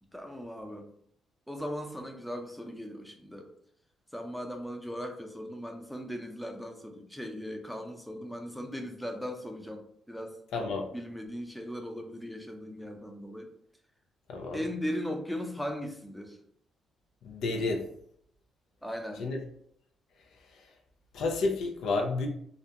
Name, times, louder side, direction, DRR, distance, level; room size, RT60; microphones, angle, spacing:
voice 1, 0.1-0.9 1.5-3.5 4.1-10.4 10.9-13.5 14.5-16.4 18.8-19.2, equal, ahead, 3 dB, 0.4 m, -38 dB
voice 2, 10.5-10.9 14.3-14.6 17.2-17.9 19.2-19.4 21.1-22.3, left 3 dB, 80° left, 2 dB, 0.4 m, -30 dB
2.4 x 2.1 x 2.7 m, 0.67 s
cardioid pair, 90°, 0 cm